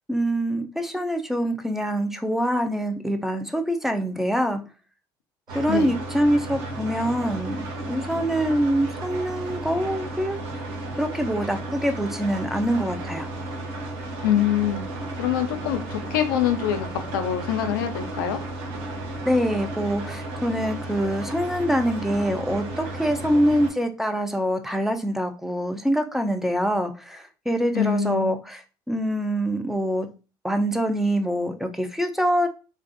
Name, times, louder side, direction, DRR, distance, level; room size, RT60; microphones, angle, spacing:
voice 1, 0.1-4.6 5.5-10.4 11.0-13.3 19.3-28.6 28.9-30.1 30.4-32.5, equal, 5° right, 6 dB, 0.4 m, -25 dB
sound 1, 5.5-23.7, right 2 dB, 75° right, 0.7 m, -33 dB
voice 2, 14.2-14.8 15.2-18.4 27.7-28.3, left 9 dB, 90° left, 7 dB, 0.4 m, -24 dB
2.6 x 2.3 x 2.5 m, 0.33 s
supercardioid pair, 80°, 11 cm